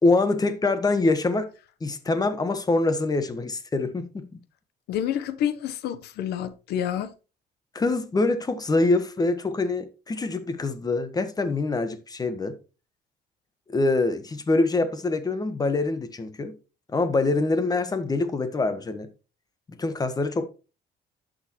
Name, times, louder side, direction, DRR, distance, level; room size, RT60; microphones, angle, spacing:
voice 1, 0.0-1.5 1.8-4.3 7.7-12.6 13.7-16.6 16.9-19.1 19.8-20.5, left 3 dB, 20° left, 1.3 m, -24 dB
voice 2, 4.9-7.1, left 10 dB, 75° left, 1.0 m, -28 dB
11.0 x 6.5 x 3.1 m
cardioid pair, 110°, 17 cm